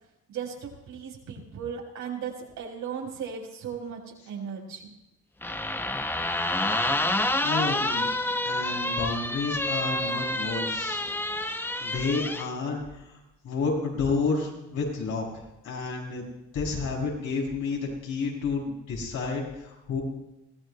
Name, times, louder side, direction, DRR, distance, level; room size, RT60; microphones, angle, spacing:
voice 1, 0.3-4.9, right 7 dB, 85° right, -1 dB, 4.5 m, -36 dB
sound 1, 5.4-12.5, left 1 dB, 5° left, 0.6 m, -28 dB
voice 2, 7.2-8.1 8.4-11.0 11.4-15.3 15.6-16.3 16.5-20.0, left 4 dB, 80° left, -1 dB, 5.5 m, -30 dB
23.0 x 16.0 x 2.2 m, 0.91 s
cardioid pair, 90°, 30 cm